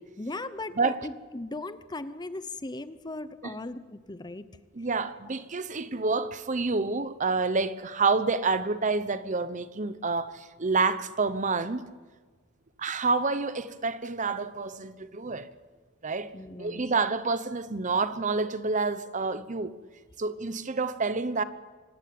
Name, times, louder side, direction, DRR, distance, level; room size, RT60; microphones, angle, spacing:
voice 1, 0.2-4.5 16.3-16.8, left 2 dB, 20° left, 0.7 m, -38 dB
voice 2, 0.8-1.1 3.4-3.5 4.7-11.8 12.8-15.5 16.0-19.7 20.2-21.4, right 4 dB, 40° right, 0.9 m, -28 dB
25.5 x 14.0 x 9.4 m
head